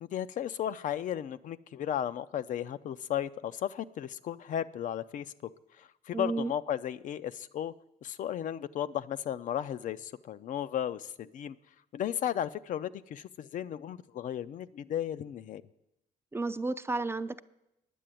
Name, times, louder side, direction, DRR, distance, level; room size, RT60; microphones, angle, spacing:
voice 1, 0.0-5.3 5.8-7.7 8.0-11.6 11.9-15.6, left 10 dB, 60° left, 13 dB, 0.5 m, -35 dB
voice 2, 6.1-6.5 16.3-17.4, right 3 dB, 15° right, 11 dB, 0.4 m, -32 dB
10.0 x 7.6 x 9.0 m, 0.87 s
cardioid pair, 90°, 15 cm